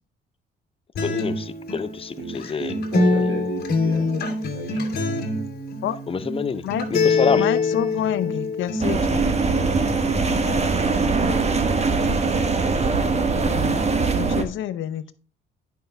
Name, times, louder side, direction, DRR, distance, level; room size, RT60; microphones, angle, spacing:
Acoustic guitar, 0.9-8.9, left 3 dB, 55° left, 2.1 m, -24 dB
voice 1, 1.0-2.7 6.1-6.6 6.9-7.5, left 5 dB, 30° left, 13 dB, 0.6 m, -26 dB
voice 2, 2.2-5.3, right 4 dB, 75° right, 3 dB, 2.3 m, -36 dB
voice 3, 7.3-9.2 13.4-13.8 14.1-15.1, left 11 dB, 80° left, 13 dB, 0.7 m, -28 dB
sound 1, 8.8-14.4, right 4 dB, 35° right, 1.1 m, -21 dB
9.3 x 5.7 x 3.3 m, 0.35 s
cardioid pair, 90°, 20 cm